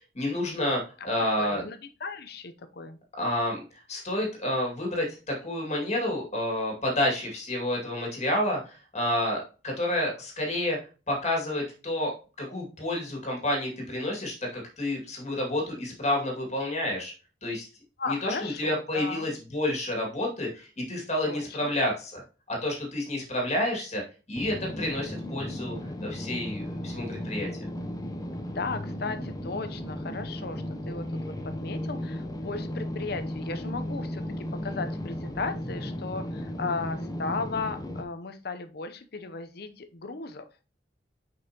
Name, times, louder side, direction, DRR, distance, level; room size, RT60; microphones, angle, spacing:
voice 1, 0.1-1.6 3.2-3.6 3.9-10.8 11.1-12.1 12.4-17.1 17.4-17.7 18.1-22.2 22.5-24.0 24.3-27.7, left 1 dB, 35° left, 0 dB, 2.2 m, -29 dB
voice 2, 1.4-3.0 18.0-19.3 21.2-21.7 28.5-40.5, left 4 dB, 55° left, 10 dB, 0.7 m, -36 dB
sound 1, 24.3-38.0, left 1 dB, 20° left, 0.7 m, -35 dB
6.6 x 5.3 x 2.9 m, 0.34 s
head